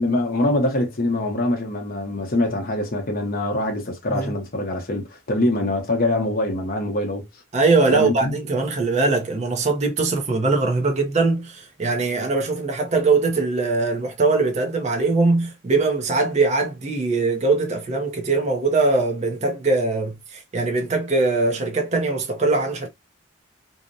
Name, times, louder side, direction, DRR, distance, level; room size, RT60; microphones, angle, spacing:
voice 1, 0.0-7.3 7.9-8.3, left 1 dB, 45° left, 0.7 m, -24 dB
voice 2, 7.5-22.9, right 3 dB, 35° right, 0.5 m, -21 dB
2.7 x 2.0 x 2.5 m
head